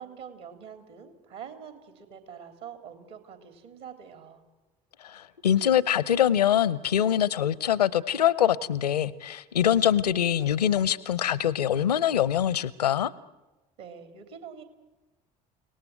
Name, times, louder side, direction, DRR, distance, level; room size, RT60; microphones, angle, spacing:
voice 1, 0.0-4.4 13.8-14.6, right 7 dB, 60° right, 7 dB, 3.5 m, -45 dB
voice 2, 5.0-13.1, left 10 dB, 80° left, 20 dB, 0.8 m, -24 dB
29.5 x 18.5 x 9.3 m, 1.1 s
figure-of-eight pair, 55°, 20 cm